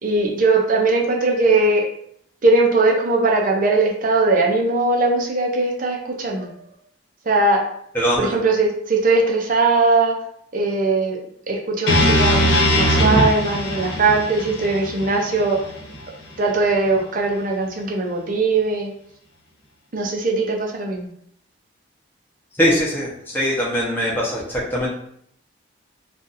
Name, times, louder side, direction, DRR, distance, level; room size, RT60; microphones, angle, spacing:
voice 1, 0.0-1.9 2.4-6.6 7.3-7.6 8.2-10.1 10.5-11.2 11.5-15.6 16.4-18.9 19.9-21.1, right 3 dB, 45° right, 1 dB, 0.5 m, -20 dB
voice 2, 7.9-8.4 22.6-24.9, equal, 10° left, -6 dB, 0.8 m, -21 dB
sound 1, 11.9-16.0, equal, 80° left, 1.2 m, -20 dB
2.5 x 2.4 x 4.0 m, 0.69 s
head